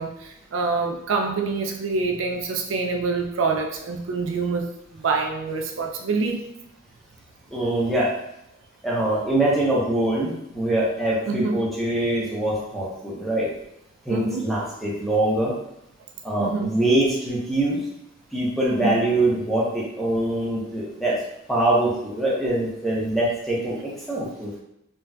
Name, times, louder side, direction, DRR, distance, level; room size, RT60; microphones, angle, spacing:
voice 1, 0.0-6.4 11.2-11.6 14.1-14.4 16.4-16.7 18.8-19.0, right 4 dB, 70° right, 2 dB, 0.4 m, -26 dB
voice 2, 7.5-8.1 8.8-13.5 14.1-15.5 16.2-17.8 18.3-21.2 21.5-24.5, right 1 dB, ahead, -6 dB, 0.7 m, -23 dB
3.9 x 2.2 x 2.2 m, 0.83 s
head